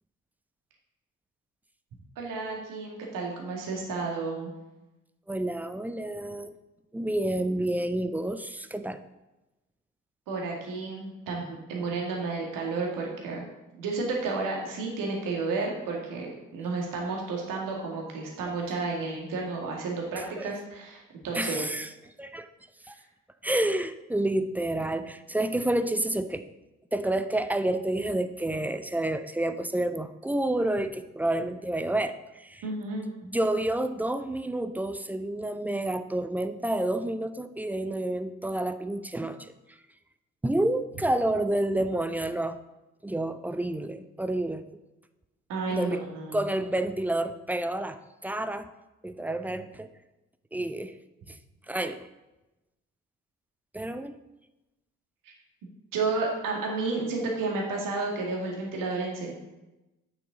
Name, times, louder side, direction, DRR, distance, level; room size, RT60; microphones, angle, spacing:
voice 1, 2.2-4.5 10.3-13.5 13.8-21.7 32.6-33.0 45.5-46.4 55.9-59.3, right 3 dB, 55° right, -1 dB, 2.1 m, -32 dB
voice 2, 5.3-6.6 6.9-9.0 20.2-20.5 21.3-21.9 22.2-22.5 22.9-23.0 23.4-26.5 26.9-32.6 33.2-39.5 40.4-42.6 43.0-44.7 45.7-46.0 46.3-48.7 49.0-49.9 50.5-50.9 51.3-51.4 51.7-52.1 53.7-54.2, right 1 dB, 5° right, 10 dB, 0.4 m, -29 dB
9.7 x 5.8 x 4.0 m, 1.0 s
figure-of-eight pair, 45°, 39 cm